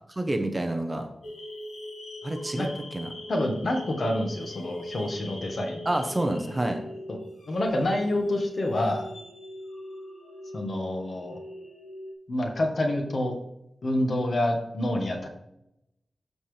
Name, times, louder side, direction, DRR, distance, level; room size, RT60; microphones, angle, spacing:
voice 1, 0.1-1.1 2.2-2.7 2.9-3.1 5.8-6.8, right 1 dB, 20° right, 5 dB, 0.8 m, -28 dB
sound 1, 1.2-12.1, left 1 dB, 80° left, 1.5 m, -41 dB
voice 2, 3.3-5.9 7.1-7.2 7.5-9.1 10.5-11.4 12.3-13.3 13.8-15.3, left 1 dB, 45° left, 3 dB, 1.4 m, -27 dB
13.0 x 4.4 x 3.3 m, 0.80 s
wide cardioid pair, 160°, 0 cm